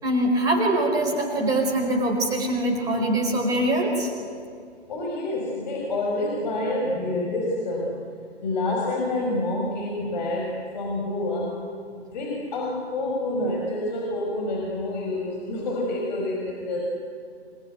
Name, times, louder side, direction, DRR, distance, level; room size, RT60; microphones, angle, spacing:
voice 1, 0.0-4.1, right 1 dB, 10° right, 0 dB, 4.5 m, -23 dB
voice 2, 4.9-8.0 8.4-11.7 11.9-16.8, left 2 dB, 40° left, -2 dB, 5.8 m, -28 dB
29.0 x 20.5 x 9.4 m, 2.2 s
figure-of-eight pair, 135°, 33 cm